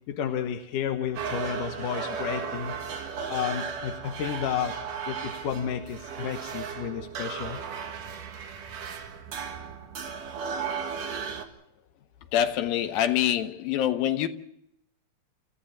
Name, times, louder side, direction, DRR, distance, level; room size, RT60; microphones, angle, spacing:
voice 1, 0.1-2.7 3.3-4.7 5.1-7.6, left 8 dB, 70° left, 2.6 m, -31 dB
sound 1, 1.2-11.5, right 6 dB, 65° right, 3.3 m, -35 dB
voice 2, 12.3-14.3, left 11 dB, 85° left, 3.0 m, -25 dB
28.5 x 15.0 x 7.4 m
omnidirectional pair, 4.1 m